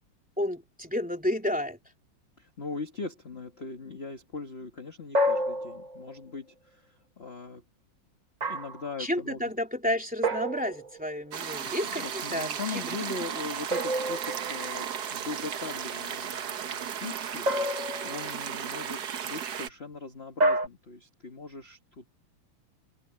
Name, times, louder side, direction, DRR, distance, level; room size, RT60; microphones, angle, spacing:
voice 1, 0.4-1.8 9.0-12.8, left 1 dB, 5° right, 3.0 m, -31 dB
voice 2, 2.4-7.6 8.5-9.4 11.6-22.0, left 4 dB, 30° left, 1.7 m, -40 dB
sound 1, 5.1-6.2 8.4-8.9 10.2-11.1 13.7-14.8 17.5-18.4 20.4-20.7, equal, 30° right, 0.9 m, -29 dB
sound 2, 11.3-19.7, right 8 dB, 55° right, 1.5 m, -35 dB
omnidirectional pair, 2.4 m